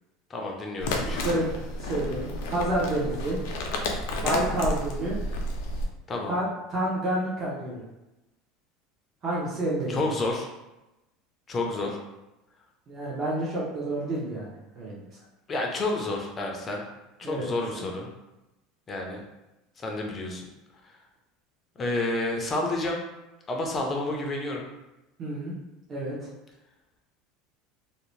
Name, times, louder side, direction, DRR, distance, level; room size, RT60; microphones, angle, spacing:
voice 1, 0.3-1.4 6.1-6.3 9.9-10.5 11.5-12.0 15.5-16.8 17.2-18.1 18.9-19.2 19.8-20.5 21.8-23.0 23.5-24.7, left 2 dB, 20° left, 1 dB, 0.4 m, -30 dB
sound 1, 0.8-5.9, left 1 dB, 75° left, 0.4 m, -31 dB
voice 2, 1.8-3.4 4.1-5.2 6.3-7.8 9.2-10.0 12.9-14.5 14.8-15.0 17.2-17.8 25.2-25.5 25.9-26.3, right 1 dB, 25° right, -7 dB, 0.6 m, -29 dB
2.6 x 2.0 x 3.0 m, 0.97 s
cardioid pair, 155°, 0 cm